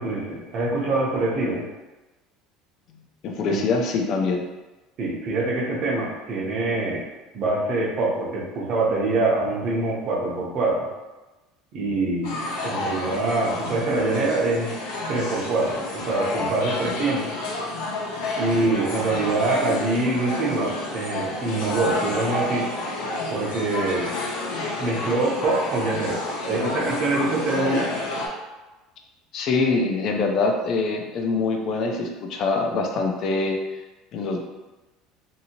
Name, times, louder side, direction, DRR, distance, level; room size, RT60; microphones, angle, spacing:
voice 1, 0.0-1.6 3.5-3.7 5.0-7.1 7.3-10.9 11.7-12.4 12.6-14.7 15.1-17.3 18.4-22.7 23.3-24.1 24.8-27.9, right 2 dB, 40° right, -3 dB, 0.7 m, -24 dB
voice 2, 3.2-4.4 29.3-33.6 34.1-34.4, left 3 dB, 40° left, 2 dB, 0.4 m, -24 dB
sound 1, 12.2-28.3, left 2 dB, 80° left, 0.6 m, -30 dB
2.7 x 2.7 x 2.8 m, 1.1 s
cardioid pair, 165°, 0 cm